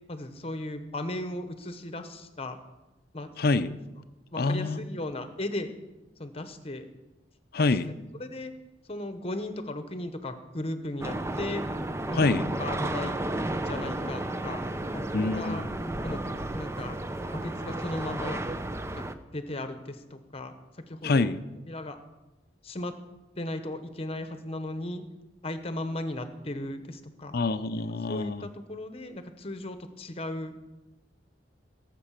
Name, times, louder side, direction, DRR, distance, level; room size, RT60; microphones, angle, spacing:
voice 1, 0.1-2.6 3.1-3.3 4.3-5.7 6.2-6.9 7.6-7.7 8.2-8.5 8.9-11.6 12.1-13.2 13.6-14.6 14.9-15.6 16.0-16.2 16.5-16.9 17.3-18.4 19.0-19.1 19.3-20.5 20.9-21.3 21.7-22.0 22.6-22.9 23.4-25.0 25.4-27.4 27.8-30.5, left 1 dB, 35° left, 9 dB, 1.0 m, -36 dB
voice 2, 3.4-3.7 4.4-4.8 7.5-7.9 12.2-12.5 15.1-15.7 21.0-21.4 27.3-28.5, left 3 dB, 55° left, 12 dB, 0.6 m, -26 dB
sound 1, 11.0-19.1, right 1 dB, 15° right, 0.6 m, -33 dB
17.0 x 7.5 x 5.8 m, 1.1 s
head